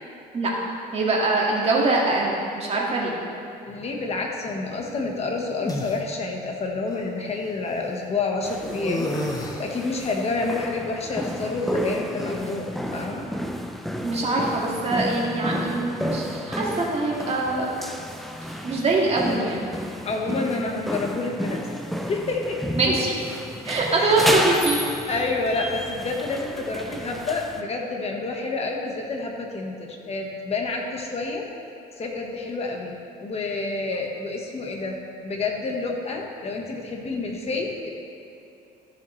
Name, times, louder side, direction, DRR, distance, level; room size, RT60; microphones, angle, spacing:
voice 1, 0.9-3.1 14.0-17.8 18.6-19.6 22.8-23.3 23.6-24.8, right 2 dB, 35° right, -3 dB, 2.0 m, -23 dB
voice 2, 3.7-9.1 9.6-13.2 20.0-21.6 21.9-22.6 24.0-24.2 25.1-31.5 32.0-32.9 33.2-35.0 35.2-37.9, left 3 dB, 40° left, 1 dB, 1.4 m, -29 dB
sound 1, 4.8-5.9 6.9-7.0 8.6-9.8 11.0-12.3, left 1 dB, 20° left, 1.0 m, -31 dB
sound 2, 8.4-27.6, equal, ahead, 0.6 m, -32 dB
13.5 x 7.1 x 3.3 m, 2.7 s
cardioid pair, 110°, 17 cm